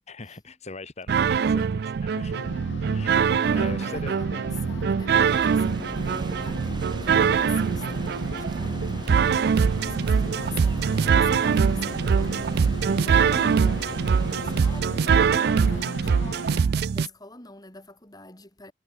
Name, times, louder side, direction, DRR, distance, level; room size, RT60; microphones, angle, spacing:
voice 1, 0.0-4.2 11.5-11.8 12.9-13.2, left 3 dB, 35° left, 1.3 m, -42 dB
sound 1, 1.1-17.1, right 6 dB, 60° right, 0.3 m, -23 dB
sound 2, 2.3-16.6, left 3 dB, 85° left, 0.9 m, -39 dB
voice 2, 3.4-18.7, left 3 dB, 20° left, 5.5 m, -46 dB
sound 3, 5.3-14.8, right 2 dB, 25° right, 0.6 m, -39 dB
head